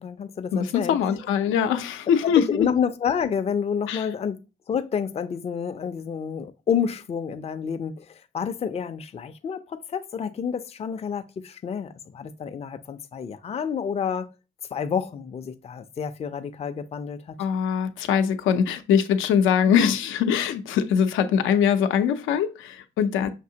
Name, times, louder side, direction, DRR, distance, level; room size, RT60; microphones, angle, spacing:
voice 1, 0.0-1.0 2.2-4.4 4.7-14.3 14.7-17.4 19.8-19.9 23.2-23.3, left 7 dB, 30° left, 0.4 m, -29 dB
voice 2, 0.5-2.7 3.9-4.0 17.4-23.3, left 8 dB, 85° left, 0.5 m, -22 dB
5.9 x 2.7 x 2.7 m
cardioid pair, 90°, 20 cm